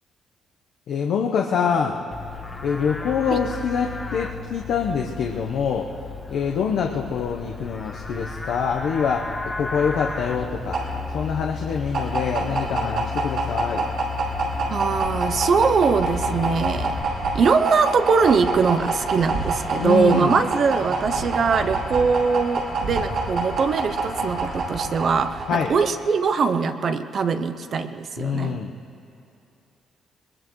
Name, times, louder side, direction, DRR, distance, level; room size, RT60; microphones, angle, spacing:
voice 1, 0.9-2.0 2.6-5.9 6.3-10.8 11.1-13.9 19.8-20.4 25.5-25.7 28.2-28.7, left 6 dB, 75° left, 1 dB, 0.8 m, -25 dB
Livestock farm animals working animals, 2.1-17.0, left 5 dB, 20° left, 1.0 m, -33 dB
sound 1, 10.0-26.0, right 3 dB, 75° right, 4.9 m, -27 dB
voice 2, 14.7-17.0 17.3-28.6, right 5 dB, 55° right, 9 dB, 0.6 m, -22 dB
21.5 x 21.0 x 3.1 m, 2.7 s
cardioid pair, 90°, 0 cm